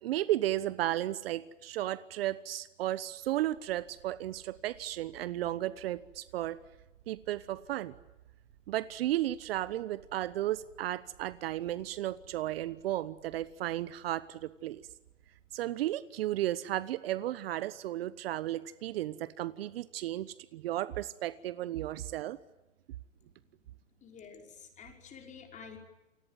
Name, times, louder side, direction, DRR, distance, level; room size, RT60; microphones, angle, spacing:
voice 1, 0.0-6.6 7.1-7.9 8.7-14.8 15.5-22.4, right 14 dB, 50° right, 16 dB, 1.1 m, -34 dB
sound 1, 3.2-15.6, right 9 dB, 70° right, 6.6 m, -62 dB
voice 2, 23.2-23.7 24.0-25.8, left 6 dB, 20° left, 3 dB, 5.5 m, -51 dB
29.0 x 22.0 x 9.2 m, 1.0 s
hypercardioid pair, 140°, 38 cm